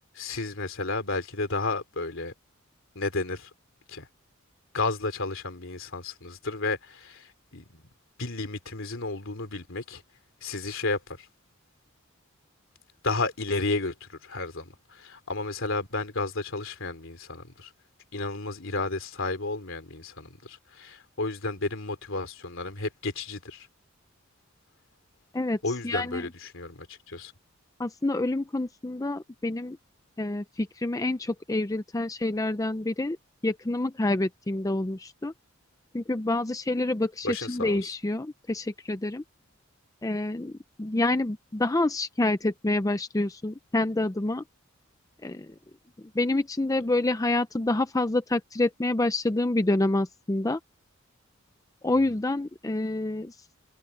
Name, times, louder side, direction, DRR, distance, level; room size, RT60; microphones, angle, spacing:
voice 1, 0.1-2.3 2.9-3.5 3.9-4.1 4.7-7.8 8.2-10.0 10.4-11.3 13.0-17.7 18.1-23.7 25.6-27.3 37.2-37.8, left 3 dB, 65° left, 3.4 m, -32 dB
voice 2, 25.3-26.3 27.8-29.8 30.2-33.2 33.4-35.3 35.9-39.2 40.0-44.4 45.2-45.5 46.1-50.6 51.8-53.4, left 2 dB, 15° left, 0.5 m, -27 dB
head